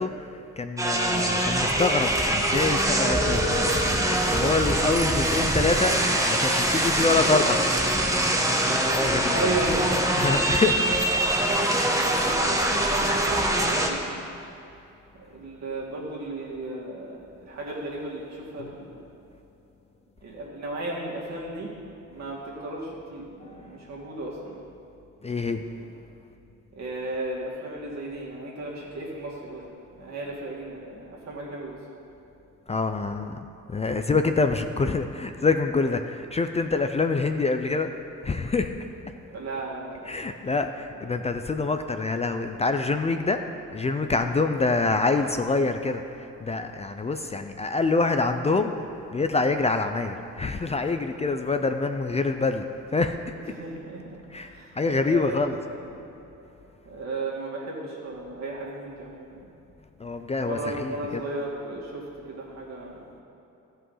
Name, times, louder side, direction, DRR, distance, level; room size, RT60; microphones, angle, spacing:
voice 1, 0.0-3.4 3.7-7.6 8.8-9.5 10.2-11.3 23.4-24.2 25.2-25.6 32.7-33.4 33.7-37.9 38.2-38.7 39.1-39.2 40.0-43.4 43.7-48.7 49.1-52.7 52.9-53.2 54.3-55.6 60.0-61.3, left 3 dB, 20° left, 7 dB, 0.5 m, -26 dB
sound 1, 0.8-13.9, right 1 dB, 10° right, 1.1 m, -23 dB
sound 2, 2.8-14.3 18.6-18.7, left 3 dB, 50° left, 1.0 m, -40 dB
voice 2, 9.3-10.6 11.4-14.3 15.2-19.1 20.2-21.7 22.0-24.6 25.7-25.9 26.7-31.8 39.3-40.1 40.9-41.0 44.1-44.3 53.5-56.1 56.8-59.5 60.4-63.1, right 2 dB, 60° right, -5 dB, 2.5 m, -35 dB
13.0 x 5.6 x 5.6 m, 2.8 s
cardioid pair, 90°, 30 cm